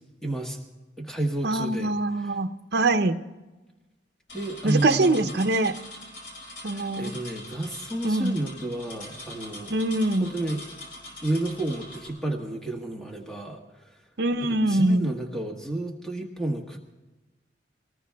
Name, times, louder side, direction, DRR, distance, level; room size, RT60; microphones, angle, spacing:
voice 1, 0.2-0.6 1.0-2.4 4.3-5.5 6.6-9.7 10.2-10.6 11.2-14.0 14.4-16.8, right 1 dB, 5° left, 0 dB, 1.4 m, -31 dB
voice 2, 1.4-3.2 4.6-5.7 6.6-7.1 8.0-8.3 9.7-10.3 14.2-15.1, right 2 dB, 60° right, 8 dB, 0.7 m, -23 dB
sound 1, 4.3-12.1, left 1 dB, 70° left, 5.9 m, -43 dB
25.0 x 19.5 x 2.3 m, 1.1 s
head